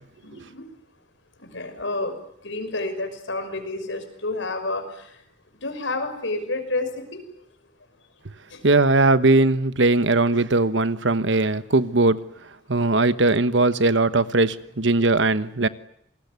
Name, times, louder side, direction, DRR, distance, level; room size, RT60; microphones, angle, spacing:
voice 1, 0.2-0.6 1.5-2.1 2.4-4.8 5.6-6.9, left 2 dB, 75° left, 5.9 m, -29 dB
voice 2, 8.6-12.2 12.7-15.7, right 2 dB, 75° right, 1.2 m, -19 dB
28.5 x 20.5 x 9.6 m
head